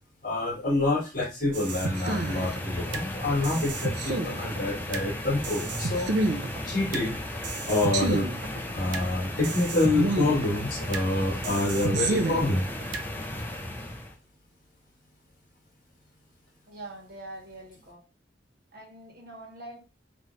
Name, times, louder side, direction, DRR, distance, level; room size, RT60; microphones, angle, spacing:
voice 1, 0.2-6.1 6.6-7.2 7.7-8.3 8.7-12.6, left 2 dB, 50° left, -2 dB, 2.1 m, -27 dB
sound 1, 1.5-14.2, left 1 dB, 10° left, 0.6 m, -35 dB
sound 2, 1.5-3.1 3.4-5.1 5.4-7.1 7.4-9.1 9.4-11.1 11.4-13.1, right 2 dB, 80° right, 0.7 m, -30 dB
voice 2, 16.7-18.0 18.7-19.8, right 1 dB, 55° right, -1 dB, 1.8 m, -44 dB
3.9 x 3.1 x 3.3 m, 0.30 s
head